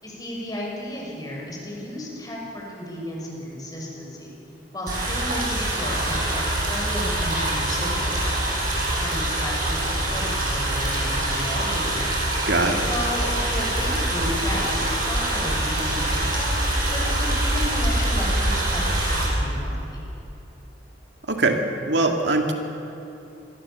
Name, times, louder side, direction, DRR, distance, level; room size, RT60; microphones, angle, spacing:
voice 1, 0.0-4.3 4.7-6.4 6.7-8.5 9.0-12.1 12.9-16.5 16.9-20.0, left 1 dB, 20° left, -2 dB, 6.3 m, -33 dB
sound 1, 4.9-19.3, right 1 dB, 50° right, 7.5 m, -24 dB
voice 2, 12.5-12.8 21.3-22.5, right 2 dB, 75° right, 3 dB, 2.3 m, -22 dB
27.0 x 21.5 x 7.1 m, 2.9 s
head